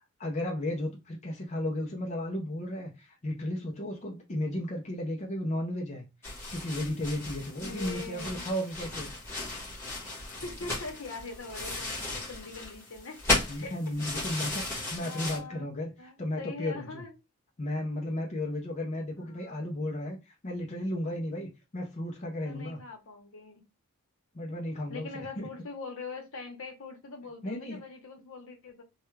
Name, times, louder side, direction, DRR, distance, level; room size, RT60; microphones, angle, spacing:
voice 1, 0.2-6.1 6.5-9.1 13.5-17.0 17.6-22.8 24.3-25.5 27.4-27.8, left 1 dB, 30° left, 0.5 m, -34 dB
sound 1, 6.2-15.4, left 2 dB, 10° left, 1.3 m, -35 dB
voice 2, 7.6-8.5 10.4-13.2 13.6-13.7 14.2-14.6 15.0-15.7 16.0-17.1 19.2-19.8 22.4-23.6 24.9-28.8, left 3 dB, 60° left, 0.9 m, -43 dB
3.2 x 2.3 x 3.1 m
head